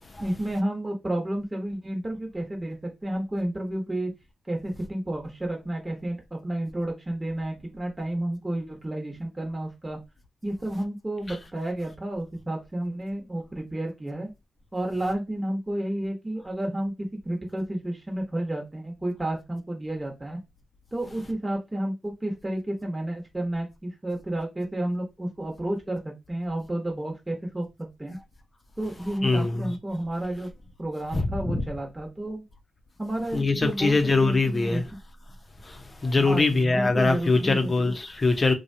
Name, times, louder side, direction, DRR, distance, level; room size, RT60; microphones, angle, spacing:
voice 1, 0.2-4.1 4.5-10.0 10.4-14.3 14.7-20.4 20.9-27.6 28.0-28.2 28.8-30.5 30.8-32.4 33.0-33.9 34.2-34.8 36.2-37.7, right 1 dB, 20° right, 1.1 m, -31 dB
voice 2, 29.2-29.7 31.1-31.7 33.3-34.8 35.6-38.5, left 3 dB, 40° left, 0.7 m, -23 dB
2.7 x 2.3 x 2.7 m
supercardioid pair, 40°, 0 cm